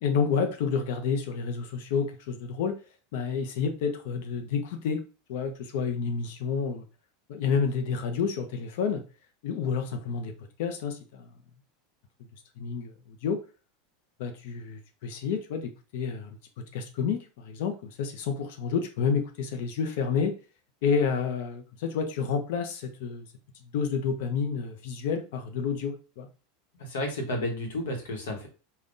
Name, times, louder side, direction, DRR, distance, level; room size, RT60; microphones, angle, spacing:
voice 1, 0.0-2.8 3.1-5.0 5.3-6.8 7.3-9.0 9.4-10.3 10.6-11.3 12.6-13.4 14.2-16.4 16.7-20.3 20.8-23.3 23.6-26.3, left 6 dB, 70° left, 6 dB, 0.5 m, -29 dB
voice 2, 26.8-28.5, left 1 dB, 90° left, 2 dB, 0.9 m, -32 dB
3.6 x 2.2 x 2.5 m, 0.34 s
supercardioid pair, 140°, 0 cm